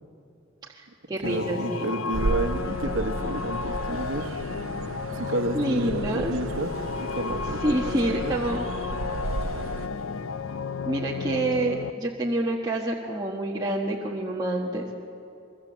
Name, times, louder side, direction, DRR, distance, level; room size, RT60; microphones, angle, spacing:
voice 1, 0.7-1.8 2.6-2.7 5.5-6.3 7.6-8.7 10.8-14.8, right 1 dB, 20° right, -3 dB, 1.4 m, -28 dB
sound 1, 1.2-11.9, left 5 dB, 85° left, 0.6 m, -33 dB
voice 2, 1.2-4.3 5.1-8.4, right 2 dB, 65° right, 7 dB, 1.3 m, -31 dB
sound 2, 2.1-9.9, right 2 dB, 85° right, 0.7 m, -34 dB
24.0 x 23.0 x 7.5 m, 2.9 s
head